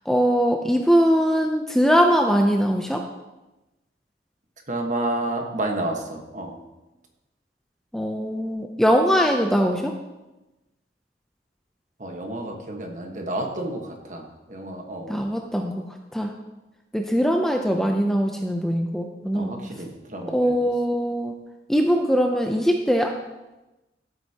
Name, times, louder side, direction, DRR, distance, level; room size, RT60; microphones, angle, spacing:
voice 1, 0.1-3.0 7.9-10.0 15.1-15.8 16.1-16.3 16.9-19.5 20.3-21.3 21.7-23.1, equal, ahead, 2 dB, 0.5 m, -21 dB
voice 2, 4.7-6.6 12.0-15.2 19.3-20.7, right 1 dB, 40° right, 2 dB, 1.3 m, -30 dB
13.5 x 7.9 x 2.9 m, 1.0 s
head